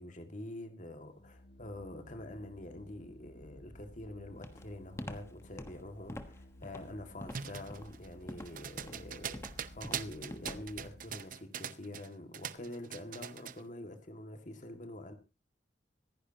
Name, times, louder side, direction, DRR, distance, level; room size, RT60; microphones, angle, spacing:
voice 1, 0.0-15.1, left 1 dB, 45° left, 2.1 m, -46 dB
Organ, 1.1-11.4, left 1 dB, 70° left, 4.0 m, -55 dB
Walk footsteps, 4.4-10.9, left 1 dB, 15° left, 1.3 m, -46 dB
sound 1, 7.3-12.1 12.3-13.6, right 8 dB, 50° right, 0.7 m, -42 dB
25.5 x 10.0 x 2.9 m
head